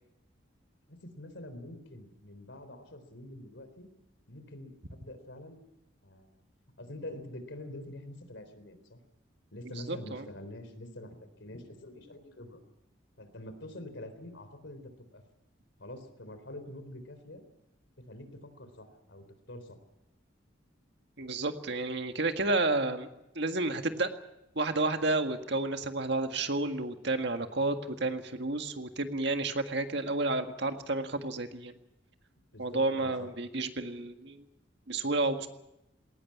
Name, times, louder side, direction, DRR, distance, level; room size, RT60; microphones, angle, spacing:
voice 1, 0.9-3.9 4.3-5.6 6.0-6.3 6.8-9.0 9.5-12.6 13.2-15.2 15.8-17.4 18.0-19.8 32.5-33.3, left 1 dB, 70° left, 9 dB, 3.7 m, -46 dB
voice 2, 9.9-10.2 21.2-23.1 23.4-24.1 24.6-31.7 32.6-34.4 34.9-35.5, right 2 dB, 60° right, 6 dB, 1.8 m, -31 dB
20.5 x 18.5 x 8.6 m, 0.87 s
head